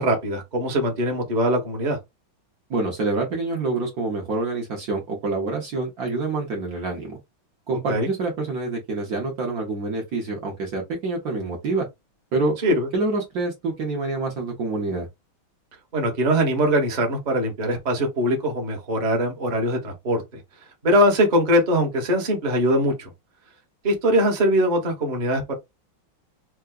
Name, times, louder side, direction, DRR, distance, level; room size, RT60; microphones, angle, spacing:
voice 1, 0.0-2.0 7.9-8.1 12.6-12.9 15.9-20.4 20.8-23.1 23.8-25.5, equal, 35° right, 0.7 m, -22 dB
voice 2, 2.7-7.2 7.7-11.9 12.3-12.6 12.9-15.1, right 3 dB, 60° right, 1.1 m, -26 dB
4.5 x 2.1 x 2.3 m
omnidirectional pair, 2.2 m